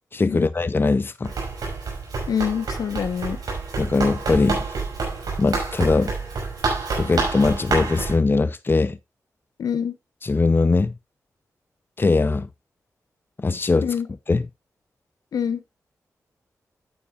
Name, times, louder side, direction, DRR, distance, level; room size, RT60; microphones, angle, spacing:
voice 1, 0.1-1.3 3.8-4.6 5.4-6.1 7.0-9.0 10.2-10.9 12.0-12.5 13.4-13.9 14.3-14.5, left 3 dB, 35° left, 0.6 m, -21 dB
Run, 1.2-8.1, right 4 dB, 85° right, 5.4 m, -28 dB
voice 2, 2.3-3.4 9.6-9.9 13.8-14.1 15.3-15.6, left 7 dB, 85° left, 1.1 m, -25 dB
11.0 x 8.8 x 2.5 m
cardioid pair, 45°, 6 cm